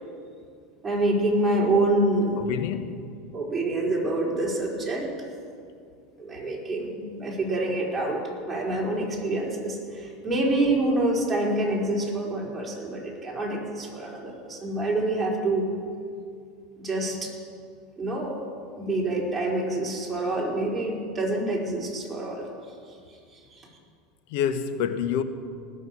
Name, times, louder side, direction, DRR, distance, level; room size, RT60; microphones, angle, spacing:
voice 1, 0.8-2.5 3.3-5.1 6.2-8.2 8.5-15.7 16.8-17.3 18.0-18.4 18.8-22.5 23.3-23.7, right 2 dB, 15° right, 4.5 m, -26 dB
voice 2, 2.4-3.1 24.3-25.2, left 8 dB, 70° left, 0.9 m, -27 dB
19.5 x 6.5 x 7.5 m
hypercardioid pair, 100°, 0 cm